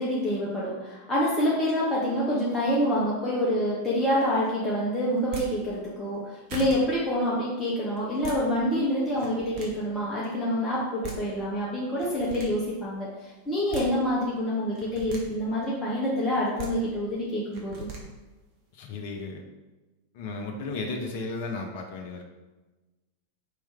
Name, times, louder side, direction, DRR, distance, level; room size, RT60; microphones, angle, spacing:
voice 1, 0.0-13.1 13.5-17.9, equal, 15° left, -7 dB, 0.9 m, -27 dB
sound 1, 5.2-5.5 6.1-6.2 6.5-6.8 8.0-8.4 9.1-9.7 10.7-10.8 11.0-11.2 12.0-12.5 13.5-13.9 14.7-15.2 16.3-16.7 17.5-18.0, right 4 dB, 45° right, 0.9 m, -38 dB
voice 2, 18.7-19.4 20.1-22.2, left 3 dB, 50° left, 2 dB, 0.6 m, -34 dB
4.1 x 3.1 x 3.4 m, 1.1 s
figure-of-eight pair, 90°, 0 cm